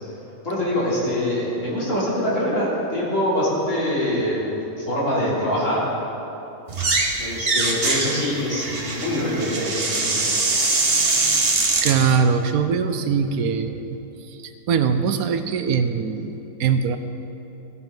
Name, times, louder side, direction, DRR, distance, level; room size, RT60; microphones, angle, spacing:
voice 1, 0.4-5.8 7.2-10.4, equal, 60° left, -8 dB, 3.8 m, -24 dB
sound 1, 6.7-7.1 7.4-12.0, right 3 dB, 45° right, 1.5 m, -22 dB
voice 2, 11.8-14.0 14.7-17.0, right 6 dB, 85° right, 9 dB, 1.2 m, -21 dB
17.0 x 9.6 x 3.9 m, 2.9 s
omnidirectional pair, 1.5 m